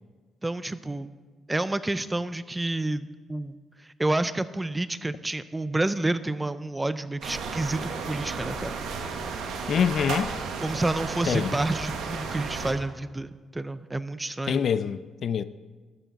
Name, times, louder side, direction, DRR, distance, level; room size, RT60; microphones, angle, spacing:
voice 1, 0.4-1.1 1.5-3.6 4.0-8.7 10.6-14.6, right 2 dB, 15° right, 0.4 m, -29 dB
sound 1, 7.2-12.7, right 5 dB, 85° right, 1.1 m, -33 dB
voice 2, 9.7-10.3 11.3-11.5 14.5-15.4, left 7 dB, 60° left, 0.4 m, -25 dB
12.5 x 8.0 x 4.0 m
cardioid pair, 95°, 0 cm